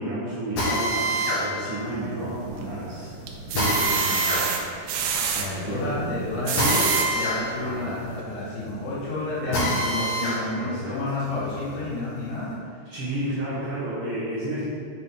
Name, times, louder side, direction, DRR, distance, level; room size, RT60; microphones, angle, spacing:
voice 1, 0.0-3.1 3.4-4.7 5.3-6.3 7.6-8.0 9.4-9.8 10.5-11.0 12.8-14.6, right 1 dB, 65° right, -9 dB, 1.4 m, -32 dB
Drill, 0.6-10.4 10.8-12.4, equal, 55° left, 2.5 m, -28 dB
sound 1, 2.2-2.8 3.3-5.5 6.2-7.1 7.7-7.8 8.1-8.2, right 7 dB, 85° right, 2.8 m, -27 dB
voice 2, 5.4-12.5, left 2 dB, 75° left, -8 dB, 4.2 m, -30 dB
8.1 x 6.9 x 4.1 m, 2.3 s
omnidirectional pair, 5.1 m